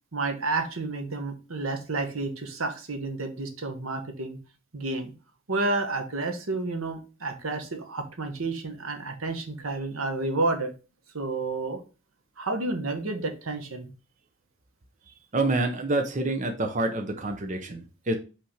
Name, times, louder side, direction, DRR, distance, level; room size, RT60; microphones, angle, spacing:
voice 1, 0.1-4.4 4.7-5.1 5.5-10.7 11.1-11.8 12.4-13.9, right 3 dB, 85° right, 6 dB, 1.3 m, -30 dB
voice 2, 15.3-18.2, right 2 dB, 35° right, 5 dB, 0.7 m, -27 dB
5.6 x 3.4 x 5.7 m, 0.32 s
head